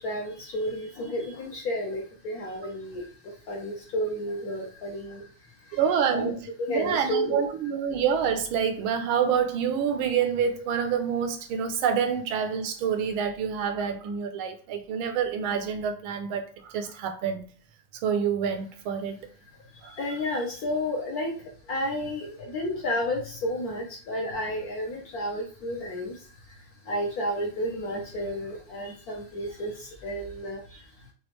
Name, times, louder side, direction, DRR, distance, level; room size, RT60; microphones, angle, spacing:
voice 1, 0.0-5.3 5.7-5.8 6.1-6.3 6.6-7.4 19.7-31.1, equal, 60° left, 1.1 m, -32 dB
voice 2, 5.7-17.4 18.0-19.2 19.8-20.0, right 7 dB, 80° right, 1.5 m, -27 dB
6.3 x 2.5 x 3.1 m
omnidirectional pair, 2.3 m